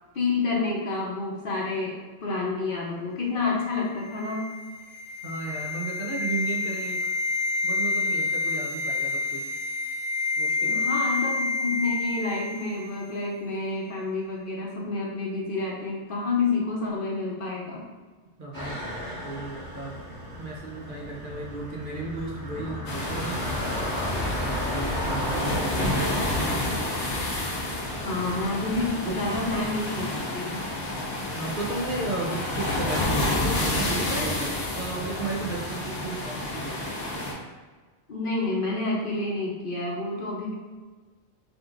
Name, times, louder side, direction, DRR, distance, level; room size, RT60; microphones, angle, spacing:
voice 1, 0.1-4.4 10.7-17.9 27.9-30.1 30.3-30.7 38.1-40.5, left 3 dB, 55° left, -3 dB, 0.9 m, -29 dB
sound 1, 3.6-12.8 13.1-13.3, left 3 dB, 15° left, 0.8 m, -29 dB
voice 2, 5.2-7.1 7.6-9.5 10.4-10.9 18.4-20.0 20.4-23.5 24.4-26.7 29.0-29.2 31.3-36.9, right 3 dB, 55° right, -2 dB, 0.8 m, -34 dB
sound 2, 18.5-29.6, left 1 dB, 70° right, 2.0 m, -35 dB
sound 3, 22.9-37.3, left 1 dB, 75° left, 1.1 m, -29 dB
5.3 x 2.9 x 2.5 m, 1.4 s
omnidirectional pair, 1.2 m